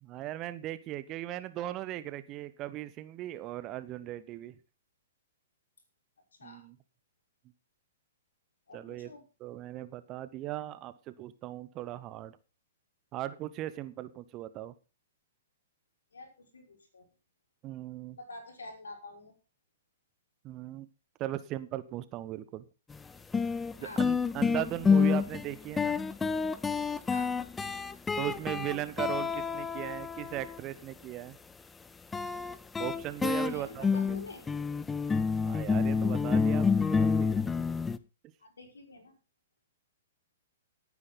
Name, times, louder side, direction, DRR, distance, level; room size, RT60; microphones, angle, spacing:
voice 1, 0.0-4.5 6.4-6.7 8.7-9.1 9.4-12.4 13.1-14.7 17.6-18.2 20.4-20.9 21.2-22.6 23.8-26.0 28.2-31.4 32.8-34.2 35.4-37.3, right 14 dB, 30° right, 14 dB, 0.9 m, -38 dB
voice 2, 6.3-6.6 8.7-9.2 16.1-17.1 18.2-19.3 23.8-24.1 27.0-27.3 33.4-34.5 38.4-39.2, left 2 dB, 70° left, 2 dB, 5.4 m, -47 dB
sound 1, 22.9-23.0 23.3-30.6 32.1-38.0, left 5 dB, 10° left, 0.7 m, -28 dB
17.5 x 9.7 x 3.9 m, 0.32 s
figure-of-eight pair, 110°, 0 cm